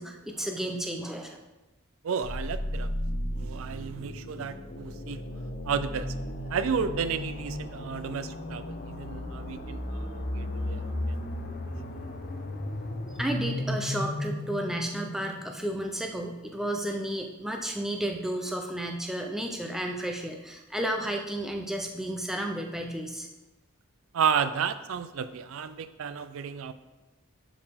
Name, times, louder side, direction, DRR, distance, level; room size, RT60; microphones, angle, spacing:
voice 1, 0.0-1.4 13.1-23.3, right 1 dB, ahead, 3 dB, 0.6 m, -32 dB
voice 2, 2.0-2.9 3.4-5.2 5.7-6.1 6.5-10.9 24.1-26.7, right 6 dB, 70° right, 12 dB, 0.4 m, -32 dB
sound 1, 2.2-16.0, left 1 dB, 40° left, 0.8 m, -35 dB
11.0 x 5.0 x 3.6 m, 1.1 s
head